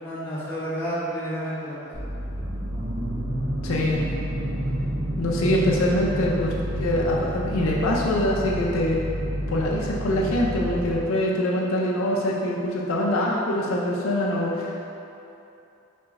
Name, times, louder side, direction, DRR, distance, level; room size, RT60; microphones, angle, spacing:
voice 1, 0.0-2.3 2.7-2.9, equal, 10° left, -11 dB, 1.0 m, -31 dB
sound 1, 1.9-11.0, equal, 40° right, 0.7 m, -29 dB
voice 2, 3.6-4.0 5.2-9.0 9.5-14.8, left 1 dB, 70° left, -3 dB, 0.4 m, -24 dB
4.3 x 3.0 x 3.6 m, 2.8 s
head